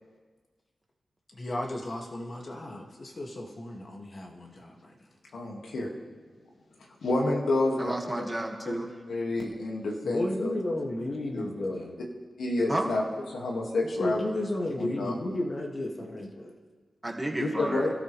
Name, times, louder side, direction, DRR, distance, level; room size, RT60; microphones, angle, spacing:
voice 1, 1.3-4.7 10.0-11.9 12.6-12.7 14.0-16.5, left 1 dB, 50° left, 0 dB, 2.5 m, -33 dB
voice 2, 5.3-5.9 7.0-7.9 8.6-8.7 9.1-10.5 11.3-11.5 12.4-13.0 13.3-14.2 14.8-15.1 17.4-17.9, left 2 dB, 85° left, -1 dB, 2.4 m, -28 dB
voice 3, 7.8-8.9 12.7-12.9 17.0-17.9, right 1 dB, 15° right, 1 dB, 2.2 m, -32 dB
27.5 x 13.0 x 3.5 m, 1.4 s
cardioid pair, 70°, 0 cm